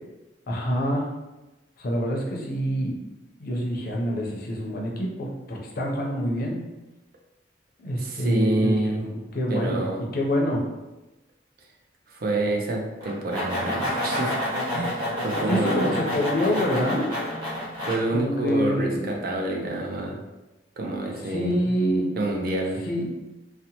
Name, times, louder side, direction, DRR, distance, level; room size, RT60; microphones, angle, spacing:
voice 1, 0.5-1.0 1.8-3.0 3.4-6.6 7.8-9.9 10.1-10.6 15.5-17.1 18.1-19.2 21.3-22.1 22.9-23.1, equal, 50° left, -1 dB, 0.5 m, -26 dB
voice 2, 8.0-9.0 9.5-10.0 12.1-14.3 14.7-15.9 17.9-20.2 20.8-21.8 22.2-22.8, right 2 dB, 55° right, 0 dB, 0.4 m, -28 dB
sound 1, 13.0-17.9, left 1 dB, 25° right, 1.0 m, -28 dB
2.7 x 2.1 x 2.8 m, 1.0 s
head